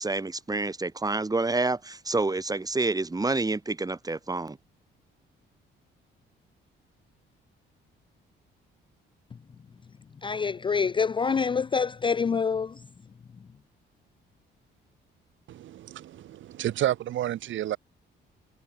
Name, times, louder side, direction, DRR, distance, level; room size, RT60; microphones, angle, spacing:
voice 1, 0.0-4.6, right 3 dB, 20° right, 2.7 m, -28 dB
voice 2, 10.2-12.7, left 5 dB, 25° left, 0.4 m, -26 dB
voice 3, 15.5-17.8, right 12 dB, 75° right, 1.3 m, -30 dB
cardioid pair, 90°, 20 cm